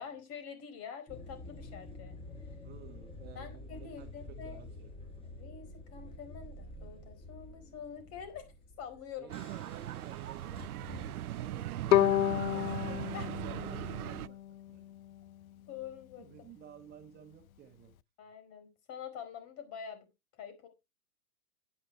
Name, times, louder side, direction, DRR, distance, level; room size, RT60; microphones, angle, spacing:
voice 1, 0.0-2.2 3.3-4.7 5.2-8.5 8.8-9.5 13.1-13.3 15.7-16.3 18.2-20.1 20.3-20.7, left 7 dB, 35° left, 10 dB, 4.7 m, -46 dB
sound 1, 1.1-11.2, left 2 dB, 15° left, 5.5 m, -49 dB
voice 2, 2.6-4.1 4.4-5.2 9.2-14.9 16.2-17.9, right 9 dB, 20° right, 5 dB, 1.7 m, -53 dB
sound 2, 9.3-14.3, right 13 dB, 80° right, 0.6 m, -39 dB
Bowed string instrument, 11.9-15.0, left 13 dB, 70° left, 0.7 m, -30 dB
10.0 x 10.0 x 4.7 m, 0.26 s
hypercardioid pair, 135°, 44 cm